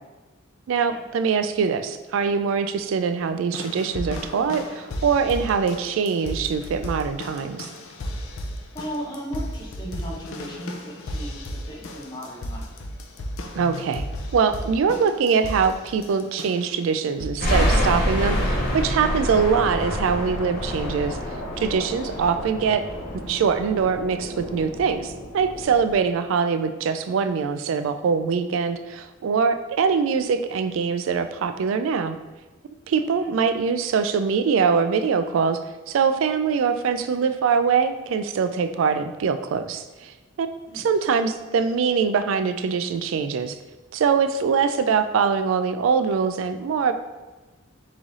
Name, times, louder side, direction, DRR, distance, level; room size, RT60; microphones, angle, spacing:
voice 1, 0.7-7.7 13.5-14.0 14.3-21.2 21.6-22.8 23.3-32.2 32.9-35.6 35.9-40.5 40.7-43.6 43.9-46.9, right 6 dB, 75° right, 10 dB, 0.3 m, -23 dB
sound 1, 3.5-16.8 17.2-17.6 18.3-18.4, left 1 dB, 80° left, 0.5 m, -35 dB
voice 2, 8.7-12.6 33.0-33.3 40.7-40.9, equal, 20° left, -3 dB, 0.9 m, -36 dB
sound 2, 17.4-25.9, equal, 50° left, 0.8 m, -27 dB
3.6 x 3.2 x 4.0 m, 1.2 s
head